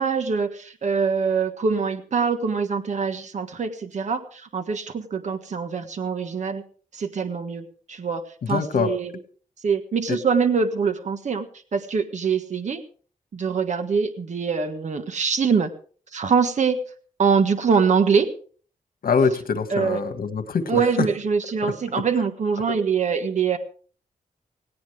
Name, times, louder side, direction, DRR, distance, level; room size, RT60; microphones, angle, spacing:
voice 1, 0.0-6.6 6.9-9.1 9.6-11.5 11.7-12.8 13.3-15.7 16.1-16.8 17.2-18.3 19.7-20.0 20.7-23.6, right 5 dB, 55° right, 8 dB, 1.5 m, -24 dB
voice 2, 8.5-8.9 19.0-20.8 21.6-21.7, left 5 dB, 90° left, 9 dB, 1.8 m, -23 dB
18.0 x 17.5 x 3.5 m, 0.42 s
wide cardioid pair, 175°, 15 cm